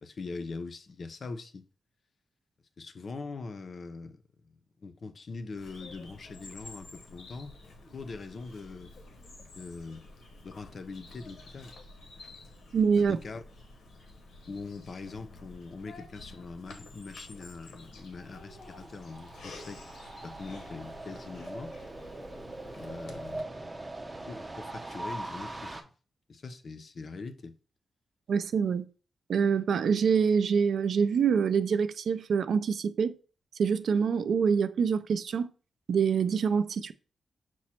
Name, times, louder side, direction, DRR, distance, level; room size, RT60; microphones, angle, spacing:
voice 1, 0.0-1.6 2.8-7.6 7.9-8.9 9.5-10.1 10.4-11.7 13.0-13.4 14.5-19.8 20.2-21.8 22.7-23.7 24.3-25.8 26.3-27.6, left 4 dB, 45° left, 0.4 m, -42 dB
Bird vocalization bird call bird song, 5.6-23.4, left 2 dB, 90° left, 0.9 m, -50 dB
voice 2, 12.7-13.2 28.3-28.8 29.3-33.1 33.6-35.5 35.9-36.9, right 6 dB, 75° right, 0.3 m, -25 dB
sound 1, 18.1-25.8, right 2 dB, 20° right, 0.6 m, -42 dB
6.0 x 2.1 x 4.2 m
wide cardioid pair, 135°, 0 cm